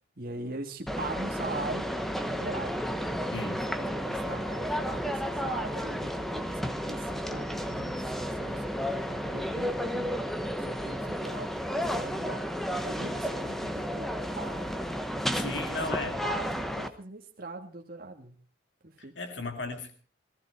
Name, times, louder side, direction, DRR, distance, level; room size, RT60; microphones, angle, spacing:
voice 1, 0.0-1.9 2.2-3.2 3.5-12.5 12.8-15.8 16.2-18.4 18.8-19.2, right 2 dB, 50° right, 3 dB, 1.7 m, -42 dB
sound 1, 0.9-16.9, equal, ahead, 1.0 m, -32 dB
voice 2, 3.3-3.7 15.4-16.2 19.2-19.9, left 2 dB, 70° left, 6 dB, 2.1 m, -35 dB
18.0 x 15.0 x 4.5 m, 0.40 s
head